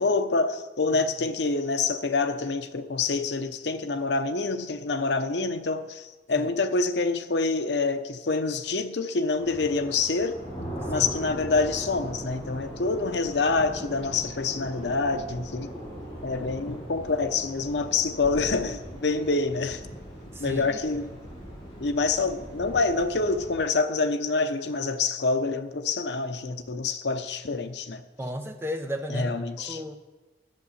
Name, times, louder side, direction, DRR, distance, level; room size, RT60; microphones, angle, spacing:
voice 1, 0.0-10.4 10.9-15.7 16.2-19.8 20.4-21.1 21.8-28.0 29.1-29.8, left 3 dB, 80° left, 0.7 m, -26 dB
sound 1, 9.4-23.6, equal, 25° left, 5.2 m, -40 dB
voice 2, 20.3-21.0 28.2-30.0, equal, 15° right, 0.8 m, -34 dB
10.5 x 8.4 x 7.1 m
head